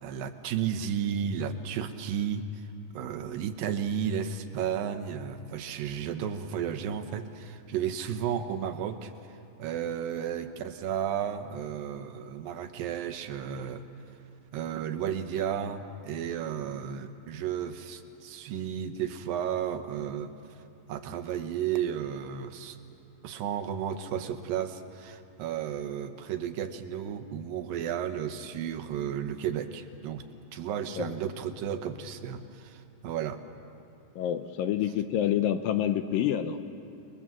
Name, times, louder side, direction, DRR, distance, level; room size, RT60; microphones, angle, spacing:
voice 1, 0.0-2.7 2.9-13.8 14.5-20.3 20.9-22.8 23.2-30.2 30.5-33.4, right 8 dB, 80° right, 8 dB, 2.7 m, -33 dB
voice 2, 34.2-36.6, left 10 dB, 80° left, 8 dB, 2.4 m, -27 dB
30.0 x 21.5 x 7.5 m, 2.6 s
omnidirectional pair, 4.2 m